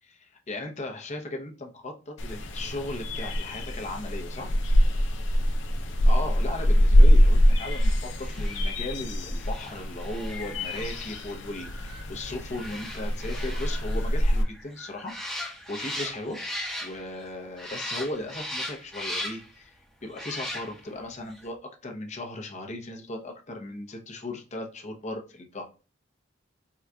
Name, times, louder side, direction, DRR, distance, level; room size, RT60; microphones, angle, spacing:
voice 1, 0.5-4.6 6.1-16.4 16.8-25.6, left 2 dB, 40° left, 2 dB, 0.8 m, -37 dB
sound 1, 2.2-14.4, equal, 70° left, 0.6 m, -24 dB
sound 2, 7.5-17.3 17.6-19.6 20.1-21.0 21.3-21.4, left 1 dB, ahead, 0.9 m, -39 dB
3.7 x 2.3 x 4.5 m, 0.33 s
head